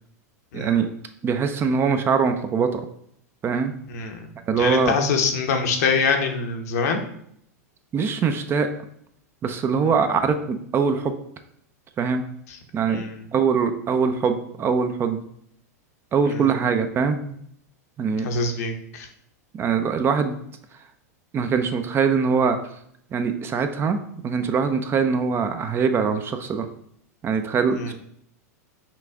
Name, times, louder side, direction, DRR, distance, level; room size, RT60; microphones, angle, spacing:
voice 1, 0.5-0.9 1.2-2.8 3.4-3.7 4.5-5.0 7.9-8.7 9.4-11.1 12.0-12.2 12.7-15.2 16.1-17.4 18.0-18.3 19.6-20.4 21.3-22.6 23.1-24.0 24.2-26.7 27.2-27.9, right 6 dB, 25° right, 8 dB, 0.5 m, -22 dB
voice 2, 3.9-4.3 4.6-7.0 12.5-12.6 12.9-13.2 16.3-16.6 18.2-19.1 27.8-27.9, left 5 dB, 65° left, 4 dB, 0.8 m, -25 dB
5.7 x 2.4 x 3.5 m, 0.67 s
hypercardioid pair, 105°, 9 cm